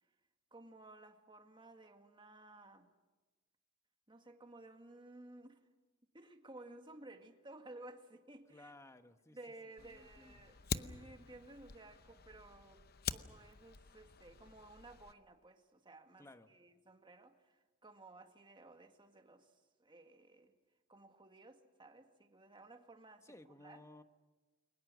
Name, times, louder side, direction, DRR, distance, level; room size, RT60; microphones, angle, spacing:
voice 1, 0.5-2.9 4.1-5.7 6.1-8.7 9.3-12.8 13.1-20.5 20.9-23.9, right 2 dB, 25° right, 1.8 m, -56 dB
voice 2, 8.5-9.4 9.8-10.5 16.2-16.5 23.2-24.0, left 2 dB, 15° left, 1.1 m, -58 dB
Fire, 9.8-15.1, left 6 dB, 50° left, 0.8 m, -46 dB
29.5 x 22.5 x 6.3 m
head